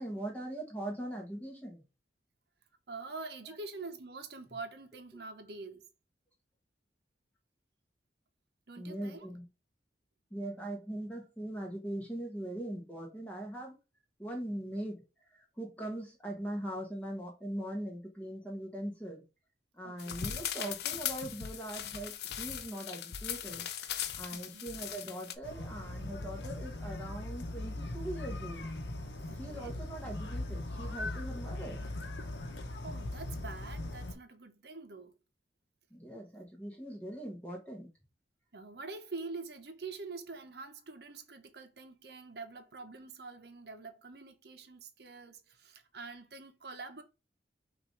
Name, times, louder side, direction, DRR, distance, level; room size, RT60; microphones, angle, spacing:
voice 1, 0.0-1.8 8.8-9.5 10.3-13.8 14.2-19.2 19.7-23.7 24.2-28.7 29.4-31.8 35.9-37.9, right 1 dB, 10° left, 1.2 m, -41 dB
voice 2, 2.9-5.8 8.7-9.3 19.8-20.3 24.3-24.7 29.3-29.7 32.8-35.2 38.5-47.0, right 3 dB, 65° right, 0.8 m, -45 dB
sound 1, 20.0-25.4, left 9 dB, 65° left, 0.5 m, -39 dB
sound 2, 25.4-34.1, left 1 dB, 80° left, 0.8 m, -40 dB
5.8 x 2.6 x 3.2 m
head